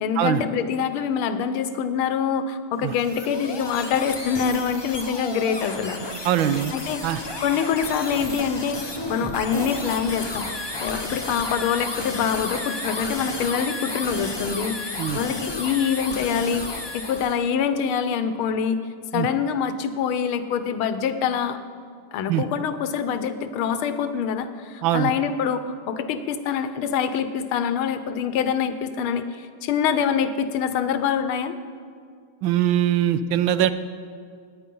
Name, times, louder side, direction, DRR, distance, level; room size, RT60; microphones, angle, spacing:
voice 1, 0.0-6.0 6.7-8.8 9.1-10.5 10.8-18.8 19.1-21.6 22.1-31.6, left 7 dB, 90° left, 10 dB, 1.6 m, -25 dB
sound 1, 2.8-17.4, left 2 dB, 35° left, 0.4 m, -32 dB
voice 2, 6.2-6.7 7.0-7.2 15.0-15.2 19.1-19.3 22.3-22.4 24.8-25.1 32.4-33.7, right 11 dB, 75° right, 12 dB, 1.3 m, -22 dB
18.0 x 9.3 x 5.4 m, 2.1 s
omnidirectional pair, 2.3 m